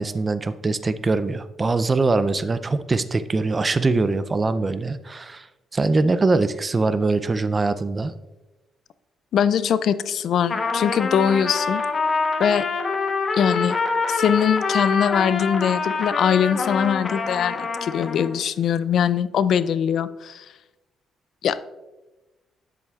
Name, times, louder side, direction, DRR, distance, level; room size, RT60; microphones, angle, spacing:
voice 1, 0.0-5.5 5.7-8.1, right 3 dB, 30° right, 13 dB, 0.4 m, -22 dB
voice 2, 9.3-11.8 12.4-12.7 13.3-13.8 14.1-20.5 21.4-21.6, left 8 dB, 70° left, 15 dB, 0.3 m, -22 dB
Trumpet, 10.4-18.3, left 4 dB, 40° left, 1.0 m, -25 dB
10.0 x 7.8 x 2.4 m, 1.1 s
cardioid pair, 90°, 0 cm